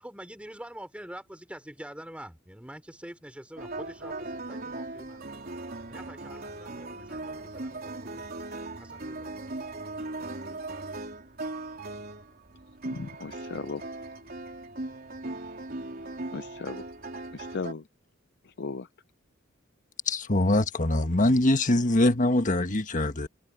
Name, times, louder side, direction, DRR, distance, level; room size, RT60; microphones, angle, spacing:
voice 1, 0.0-5.4 5.9-8.3 8.8-9.3, right 1 dB, 5° right, 3.7 m, -45 dB
sound 1, 3.6-17.7, right 2 dB, 50° right, 3.6 m, -38 dB
voice 2, 12.9-13.8 16.3-16.8 17.3-17.8 18.6-18.9, left 4 dB, 55° left, 0.5 m, -36 dB
voice 3, 20.1-23.3, left 1 dB, 40° left, 1.5 m, -23 dB
open air
head